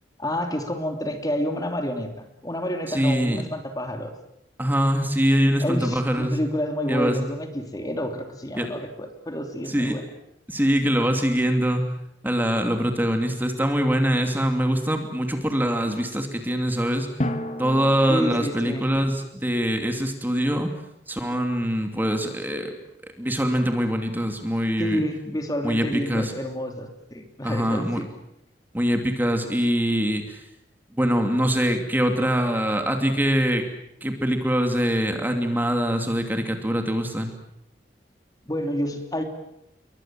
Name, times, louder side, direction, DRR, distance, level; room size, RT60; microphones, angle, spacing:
voice 1, 0.2-4.1 5.6-10.0 18.1-18.9 24.8-28.1 38.5-39.2, equal, 20° left, 5 dB, 2.9 m, -29 dB
voice 2, 2.9-3.4 4.6-6.3 6.9-7.2 8.6-8.7 9.6-10.0 10.5-11.8 12.2-17.1 17.6-20.7 21.1-22.7 23.2-25.0 25.6-26.3 27.4-28.0 28.7-30.4 31.0-33.6 34.0-37.3, equal, 10° right, 5 dB, 2.7 m, -23 dB
Drum, 17.2-19.0, left 1 dB, 40° left, 2.0 m, -31 dB
29.5 x 23.0 x 7.6 m, 0.78 s
head